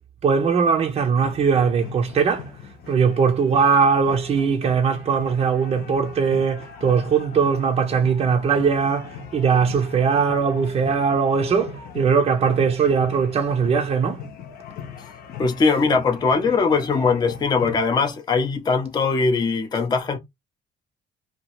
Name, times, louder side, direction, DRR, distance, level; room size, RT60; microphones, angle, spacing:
voice 1, 0.2-2.6 2.9-14.2, right 6 dB, 35° right, 0.5 m, -20 dB
sound 1, 1.1-17.9, left 6 dB, 65° left, 0.7 m, -39 dB
voice 2, 15.4-20.2, left 4 dB, 25° left, 0.5 m, -21 dB
2.8 x 2.3 x 2.9 m
cardioid pair, 110°, 17 cm